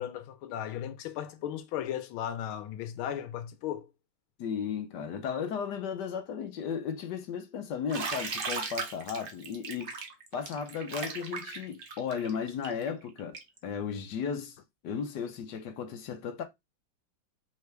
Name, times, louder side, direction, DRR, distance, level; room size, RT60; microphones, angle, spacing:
voice 1, 0.0-3.9, left 10 dB, 90° left, 1.5 m, -36 dB
voice 2, 4.4-9.9 10.3-14.6 14.8-16.4, left 7 dB, 65° left, 1.2 m, -35 dB
Bathtub (filling or washing), 7.9-13.6, right 4 dB, 80° right, 0.5 m, -37 dB
3.8 x 3.4 x 3.2 m
omnidirectional pair, 2.2 m